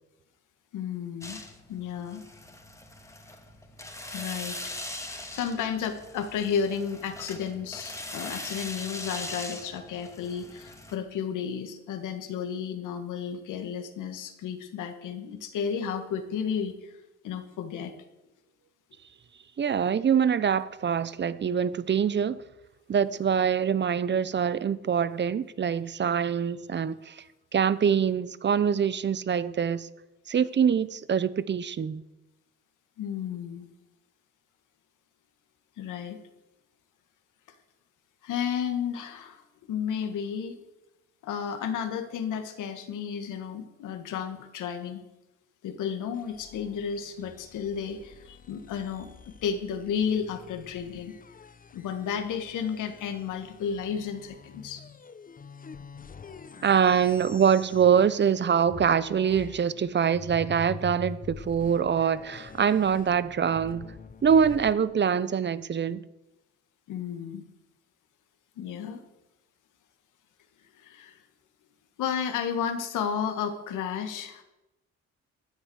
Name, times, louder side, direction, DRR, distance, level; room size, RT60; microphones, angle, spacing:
voice 1, 0.7-1.4 1.7-2.2 3.9-4.8 5.1-16.9 17.2-17.9 33.0-33.7 35.8-36.2 38.2-40.6 41.2-45.0 45.6-49.1 49.4-51.1 51.7-54.8 66.9-67.4 68.6-69.0 70.8-71.2 72.0-74.4, left 7 dB, 85° left, 2.0 m, -32 dB
sound 1, 1.2-10.9, left 1 dB, 10° left, 2.1 m, -41 dB
voice 2, 19.6-22.4 22.9-27.2 27.5-29.9 30.3-32.0 56.6-63.9 64.2-66.0, right 7 dB, 35° right, 0.8 m, -24 dB
sound 2, 46.1-58.4 58.7-64.7, left 5 dB, 30° left, 0.9 m, -46 dB
16.0 x 10.0 x 6.4 m
cardioid pair, 90°, 30 cm